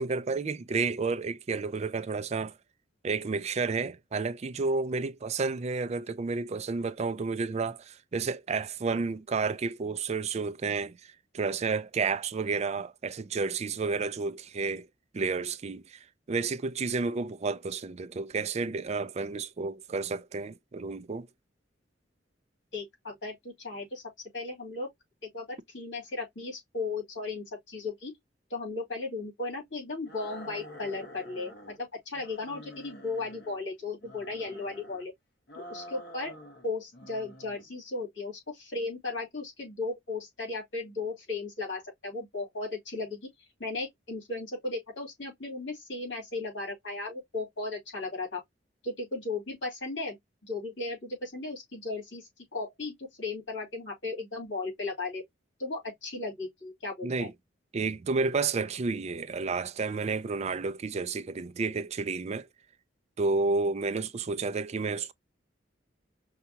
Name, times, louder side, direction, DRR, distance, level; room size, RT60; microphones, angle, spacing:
voice 1, 0.0-2.6 3.0-14.9 15.1-21.3 57.0-57.3 57.7-62.5 63.2-65.1, right 4 dB, 35° right, 0.4 m, -31 dB
voice 2, 22.7-24.0 24.3-24.9 25.2-25.5 25.7-28.1 28.5-31.5 31.8-35.1 35.5-36.3 36.6-48.4 48.8-50.2 50.4-55.2 55.6-57.3, left 3 dB, 80° left, 2.6 m, -36 dB
sound 1, 30.0-31.8 32.1-33.6 34.0-35.1 35.5-36.7 36.9-37.7, left 1 dB, 60° left, 1.2 m, -47 dB
5.6 x 2.3 x 2.7 m
head